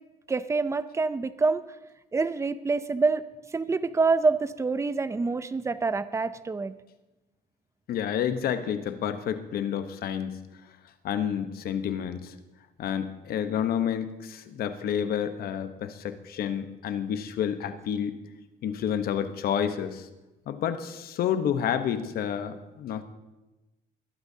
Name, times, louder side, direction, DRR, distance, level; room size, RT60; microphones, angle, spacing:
voice 1, 0.3-1.6 2.1-3.2 3.5-6.7, right 4 dB, 15° right, 14 dB, 0.5 m, -26 dB
voice 2, 7.9-10.4 11.0-12.3 12.8-18.2 18.6-20.1 20.5-23.0, left 9 dB, 65° left, 9 dB, 1.0 m, -29 dB
21.0 x 12.0 x 2.8 m, 1.0 s
cardioid pair, 110°, 17 cm